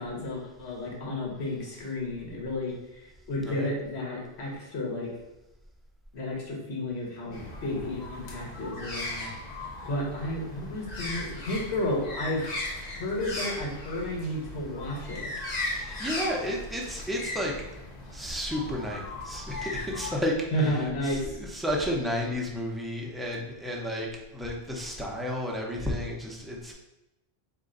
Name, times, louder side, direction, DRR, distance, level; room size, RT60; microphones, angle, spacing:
voice 1, 0.0-5.1 6.1-9.3 9.8-12.4 12.9-15.3 20.5-21.4, left 1 dB, 85° left, -1 dB, 1.3 m, -32 dB
sound 1, 7.3-20.2, left 2 dB, 45° left, 0.8 m, -37 dB
voice 2, 15.6-17.5 18.1-26.7, equal, ahead, -2 dB, 0.5 m, -32 dB
4.3 x 2.7 x 3.7 m, 0.97 s
omnidirectional pair, 1.1 m